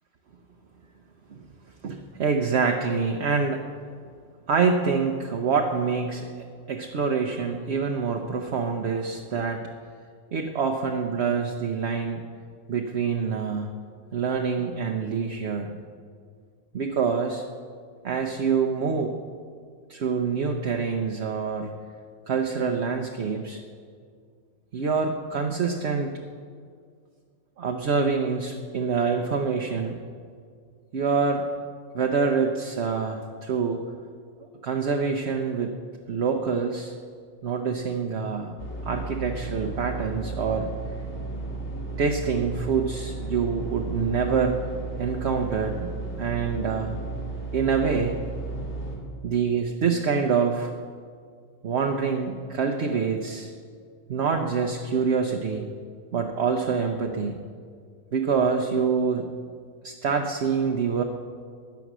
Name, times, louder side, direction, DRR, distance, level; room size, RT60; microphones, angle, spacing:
voice 1, 1.8-3.6 4.5-9.6 10.3-12.2 12.7-13.7 14.1-15.8 16.7-17.4 18.0-19.1 19.9-21.7 22.3-23.6 24.7-26.1 27.6-30.0 30.9-31.4 31.9-33.8 34.4-35.7 36.1-36.9 37.4-38.5 38.8-40.7 42.0-44.6 45.0-45.9 46.2-46.9 47.5-48.2 49.2-50.7 51.6-53.5 54.1-55.7 56.1-57.4 58.1-59.3 59.8-61.0, right 5 dB, 60° right, 3 dB, 1.1 m, -26 dB
sound 1, 38.6-49.0, right 3 dB, 60° left, 3.0 m, -34 dB
16.5 x 10.5 x 6.2 m, 2.1 s
omnidirectional pair, 1.3 m